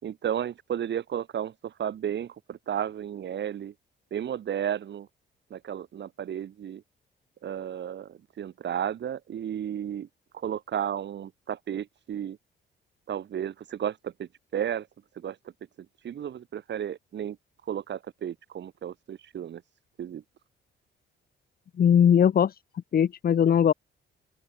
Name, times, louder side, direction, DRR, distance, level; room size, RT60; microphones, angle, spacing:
voice 1, 0.0-3.7 4.1-5.1 5.5-6.8 7.4-10.1 10.3-12.4 13.1-14.9 15.2-15.4 15.8-17.4 17.7-19.6 20.0-20.2, right 9 dB, 65° right, 6.7 m, -33 dB
voice 2, 21.8-22.6 22.9-23.7, left 8 dB, 50° left, 1.3 m, -20 dB
open air
cardioid pair, 90°, 20 cm